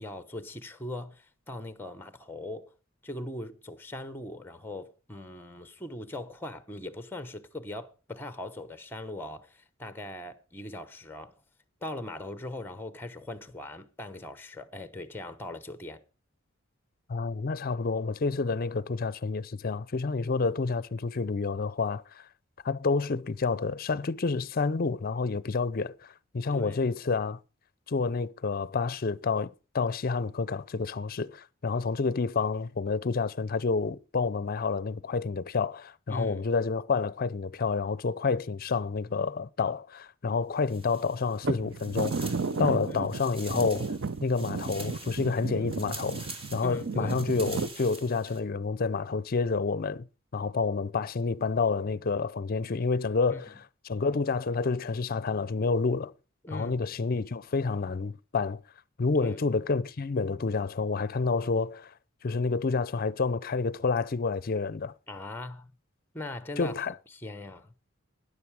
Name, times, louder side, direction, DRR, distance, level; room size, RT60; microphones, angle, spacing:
voice 1, 0.0-2.7 3.0-11.4 11.8-16.0 26.5-26.8 36.1-36.5 42.9-43.1 46.6-47.2 53.3-53.4 56.4-56.8 59.2-59.4 65.1-65.7 66.1-66.7 67.1-67.7, left 1 dB, 10° left, 0.9 m, -40 dB
voice 2, 17.1-22.3 22.6-27.4 27.9-29.5 29.7-43.9 44.2-50.1 50.3-53.5 53.8-56.1 56.5-58.6 59.0-61.9 62.2-64.9 66.6-66.9, left 4 dB, 45° left, 0.5 m, -29 dB
raking leaves, 40.6-41.4 41.7-48.4, right 2 dB, 30° right, 2.2 m, -45 dB
sound 1, 41.4-47.7, right 4 dB, 60° right, 0.6 m, -33 dB
13.0 x 9.9 x 4.7 m
head